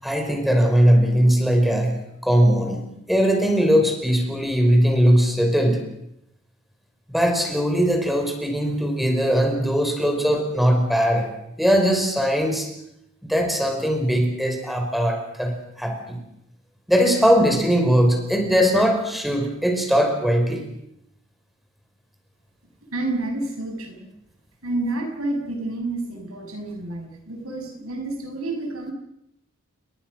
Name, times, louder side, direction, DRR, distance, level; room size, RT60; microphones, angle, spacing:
voice 1, 0.0-2.8 3.1-5.8 7.1-11.3 11.6-12.7 13.2-16.2 16.9-20.6, equal, ahead, 3 dB, 5.2 m, -20 dB
voice 2, 22.9-24.1 24.6-28.9, right 2 dB, 80° right, 4 dB, 6.6 m, -29 dB
29.0 x 22.0 x 6.6 m, 0.81 s
head